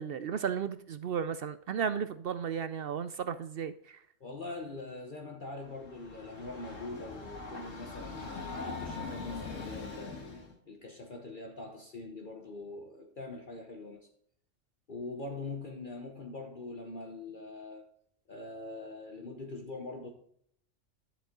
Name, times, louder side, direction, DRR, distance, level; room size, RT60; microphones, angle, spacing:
voice 1, 0.0-3.7, right 7 dB, 60° right, 0.7 m, -34 dB
voice 2, 4.2-10.2 10.6-14.1 14.9-17.8 18.3-20.1, left 2 dB, 45° left, 1.2 m, -43 dB
Train, 5.6-10.5, left 3 dB, 90° left, 2.0 m, -42 dB
11.5 x 7.0 x 3.8 m
omnidirectional pair, 1.3 m